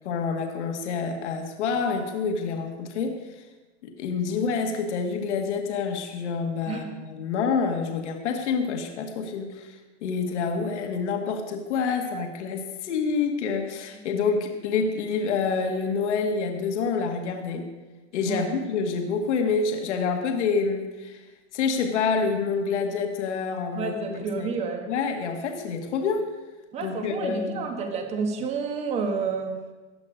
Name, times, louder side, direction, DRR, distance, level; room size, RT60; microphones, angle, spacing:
voice 1, 0.1-3.2 3.8-17.7 18.1-21.2 21.5-24.5 24.9-26.3 26.8-27.7, left 5 dB, 70° left, 3 dB, 1.8 m, -27 dB
voice 2, 23.7-24.9 26.7-29.6, right 5 dB, 20° right, 5 dB, 1.3 m, -30 dB
16.0 x 10.5 x 5.1 m, 1.2 s
supercardioid pair, 170°, 36 cm